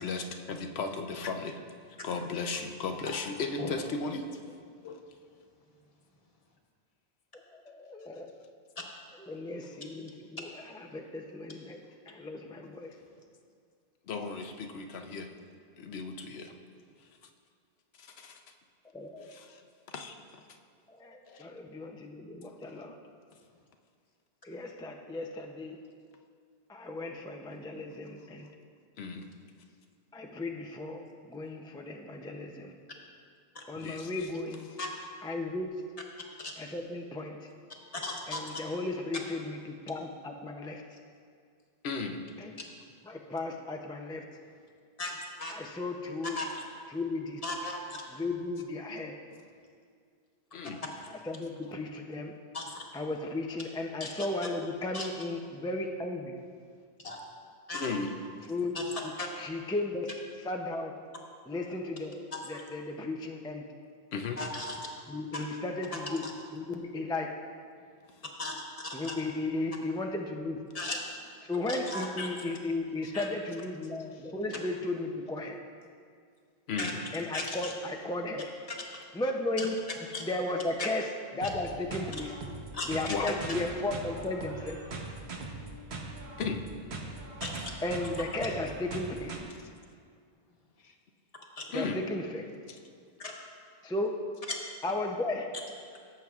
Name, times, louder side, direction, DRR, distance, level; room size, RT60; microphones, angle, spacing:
voice 1, 0.0-1.6 2.0-4.2 4.8-5.0 14.1-15.3 15.8-16.6 18.0-18.4 19.2-19.6 19.9-20.2 21.3-21.5 22.7-22.9 29.0-29.3 33.7-34.1 41.8-42.2 50.5-50.8 57.7-58.2 64.1-64.4 65.4-65.5 73.0-73.1 76.7-77.0 83.1-83.3 86.4-86.6 90.8-90.9 91.7-92.0, left 4 dB, 80° left, 5 dB, 0.9 m, -36 dB
voice 2, 7.5-8.3 9.2-11.8 12.1-12.9 18.9-19.3 20.9-23.0 24.4-25.8 26.7-28.5 30.1-32.8 33.7-34.7 35.2-35.8 36.6-37.5 38.3-40.8 42.4-42.6 43.0-44.3 45.5-46.4 46.9-47.4 48.1-49.2 51.2-52.3 52.9-56.4 58.5-60.1 60.4-60.9 61.5-63.6 65.1-66.3 66.5-67.3 68.9-70.6 71.5-75.6 77.1-78.5 79.1-79.8 80.2-82.3 82.9-84.8 87.8-89.4 91.7-92.4 93.8-94.3 94.8-95.5, left 2 dB, 5° left, 2 dB, 0.3 m, -35 dB
voice 3, 38.0-38.4 45.0-45.5 46.2-46.6 47.4-47.8 52.5-52.7 54.0-54.1 54.9-55.1 57.0-57.2 57.7-57.9 58.7-58.8 59.2-59.3 62.3-62.6 64.4-64.8 65.3-65.4 65.9-66.0 68.4-69.2 70.7-71.0 71.7-72.3 73.1-73.3 76.8-76.9 77.3-77.7 79.6-79.7 80.1-80.2 80.8-80.9 82.7-83.3 87.4-87.7 91.6-91.7 93.2-93.3, left 2 dB, 35° left, 0 dB, 1.2 m, -36 dB
sound 1, 81.4-89.4, right 3 dB, 80° right, 1.3 m, -41 dB
16.5 x 7.7 x 2.4 m, 2.1 s
omnidirectional pair, 1.1 m